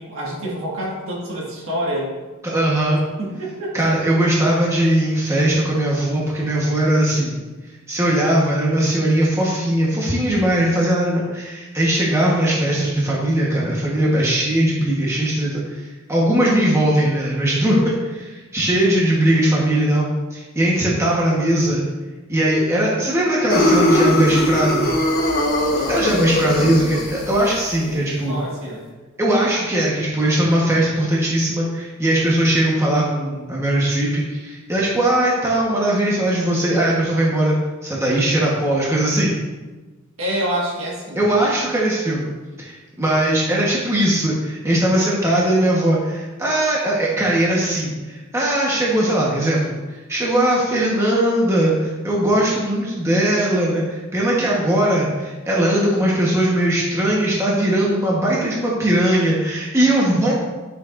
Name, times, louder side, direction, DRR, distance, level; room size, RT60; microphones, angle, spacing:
voice 1, 0.0-2.1 3.2-3.8 27.9-28.8 40.2-41.3, equal, 75° right, -4 dB, 1.7 m, -27 dB
voice 2, 2.4-3.0 3.7-7.4 7.9-21.8 22.3-24.9 25.9-28.4 29.2-37.5 37.8-39.4 41.1-42.3 42.6-49.6 49.9-60.3, right 1 dB, 15° right, -5 dB, 1.1 m, -19 dB
sound 1, 23.5-27.7, left 1 dB, 50° left, 1.2 m, -20 dB
10.5 x 5.9 x 2.5 m, 1.2 s
head